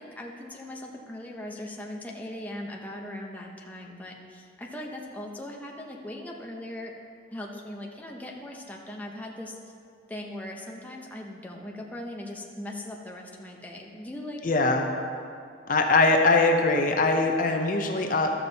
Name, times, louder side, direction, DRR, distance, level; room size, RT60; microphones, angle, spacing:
voice 1, 0.0-6.9 7.3-9.7 10.1-15.2, left 1 dB, 10° left, -1 dB, 0.7 m, -39 dB
voice 2, 14.4-14.9 15.7-18.3, left 3 dB, 45° left, 3 dB, 0.6 m, -22 dB
12.0 x 7.1 x 4.0 m, 2.3 s
head